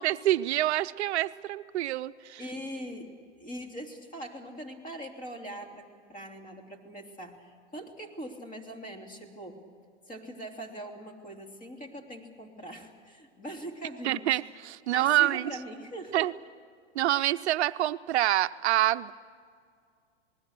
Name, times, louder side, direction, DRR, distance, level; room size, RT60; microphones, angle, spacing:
voice 1, 0.0-2.4 14.0-15.5 16.1-16.3 17.0-19.1, right 14 dB, 65° right, 13 dB, 0.6 m, -26 dB
voice 2, 2.4-3.1 3.4-9.6 10.1-14.3 14.9-16.3, right 1 dB, 20° left, 3 dB, 3.2 m, -42 dB
27.0 x 20.0 x 6.7 m, 2.2 s
hypercardioid pair, 115°, 35 cm